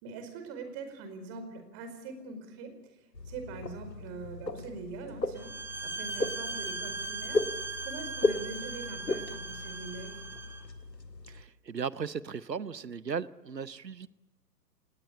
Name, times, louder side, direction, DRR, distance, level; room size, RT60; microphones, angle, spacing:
voice 1, 0.0-5.5 5.8-10.2, right 4 dB, 30° right, 8 dB, 4.8 m, -43 dB
sound 1, 3.1-11.4, left 2 dB, 85° left, 1.8 m, -36 dB
sound 2, 5.4-10.6, right 3 dB, 5° right, 1.5 m, -39 dB
voice 2, 11.3-14.1, right 6 dB, 85° right, 18 dB, 1.0 m, -36 dB
27.5 x 19.5 x 8.5 m, 1.0 s
figure-of-eight pair, 120°, 49 cm